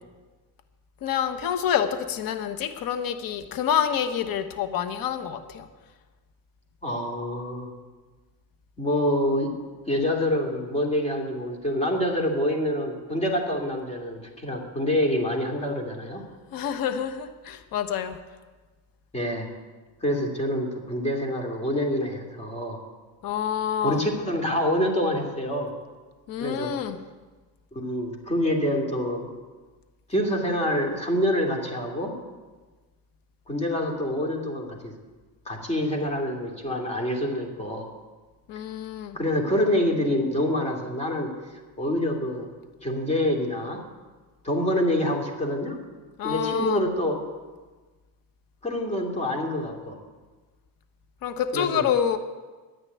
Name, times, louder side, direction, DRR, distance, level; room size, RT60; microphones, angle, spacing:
voice 1, 1.0-5.7 16.5-18.2 23.2-24.0 26.3-27.0 38.5-39.2 46.2-46.9 51.2-52.2, left 9 dB, 50° left, 9 dB, 1.1 m, -27 dB
voice 2, 6.8-7.7 8.8-9.5 9.9-16.3 19.1-19.5 20.0-22.8 23.8-25.7 26.4-26.7 27.7-29.3 30.1-32.1 33.5-34.9 35.5-37.9 39.1-41.3 41.8-42.5 42.8-43.8 44.4-45.8 46.2-47.2 48.6-50.0 51.5-51.9, left 1 dB, 15° left, 1 dB, 2.8 m, -26 dB
11.0 x 10.0 x 9.7 m, 1.3 s
cardioid pair, 140°, 44 cm